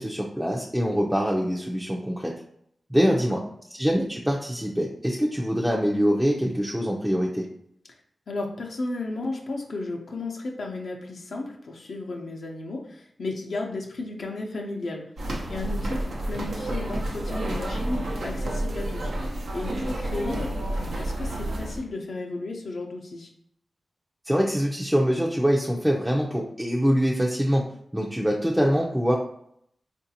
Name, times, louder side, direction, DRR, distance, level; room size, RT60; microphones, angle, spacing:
voice 1, 0.0-2.3 2.9-3.4 3.8-7.5 24.3-27.7 27.9-29.2, equal, 10° right, -3 dB, 0.5 m, -24 dB
voice 2, 8.3-15.0 15.5-19.1 19.5-20.6 21.0-23.3, left 2 dB, 75° left, 0 dB, 0.6 m, -34 dB
sound 1, 15.2-21.8, right 1 dB, 85° right, 0.7 m, -30 dB
3.8 x 2.5 x 2.8 m, 0.71 s
cardioid pair, 65°, 0 cm